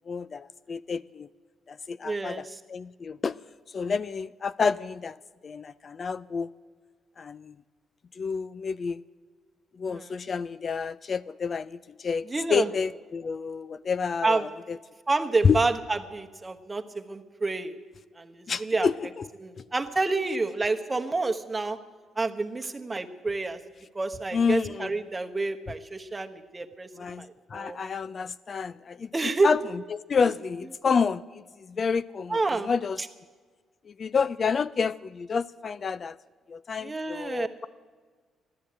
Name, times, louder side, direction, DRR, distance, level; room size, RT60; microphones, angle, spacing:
voice 1, 0.1-1.3 1.7-3.4 3.7-5.2 5.4-6.5 7.2-7.5 8.2-9.0 9.8-14.8 15.4-15.6 18.5-19.3 24.3-24.9 27.0-27.2 27.5-29.1 29.4-33.0 33.9-36.2 36.5-37.7, left 5 dB, 45° left, 16 dB, 0.4 m, -29 dB
voice 2, 2.0-2.6 9.9-10.2 12.3-12.7 14.2-14.4 15.1-17.7 18.2-18.9 19.4-21.8 22.2-23.6 23.9-27.8 29.1-29.5 30.2-30.3 32.3-32.7 36.8-37.5, right 3 dB, 20° right, 5 dB, 1.2 m, -29 dB
14.0 x 11.5 x 8.7 m, 1.5 s
cardioid pair, 90°, 0 cm